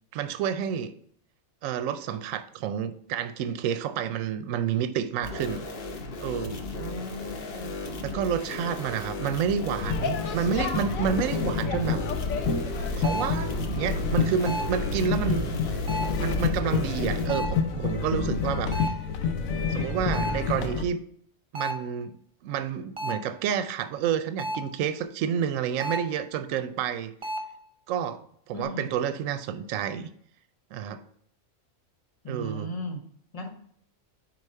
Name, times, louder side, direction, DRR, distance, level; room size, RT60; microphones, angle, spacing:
voice 1, 0.1-0.9 1.6-5.6 6.2-6.6 8.0-12.0 12.9-15.5 16.2-19.0 19.7-21.0 21.5-22.1 22.4-27.1 27.9-28.2 28.5-30.1 30.7-31.0 32.3-32.7, right 8 dB, 75° right, 11 dB, 0.9 m, -29 dB
sound 1, 5.2-17.3, left 2 dB, 50° left, 0.9 m, -36 dB
voice 2, 6.7-7.7 15.2-15.7 28.5-29.0 32.2-33.0 33.3-33.5, equal, 30° left, 4 dB, 0.9 m, -36 dB
sound 2, 9.8-20.8, left 5 dB, 80° left, 1.2 m, -28 dB
sound 3, 13.0-13.4 14.5-14.8 15.9-16.3 17.3-17.7 18.7-19.1 20.1-20.5 21.5-21.9 23.0-23.3 24.4-24.8 25.8-26.2 27.2-27.6, right 1 dB, 40° right, 0.4 m, -33 dB
4.8 x 4.4 x 5.5 m, 0.64 s
omnidirectional pair, 1.4 m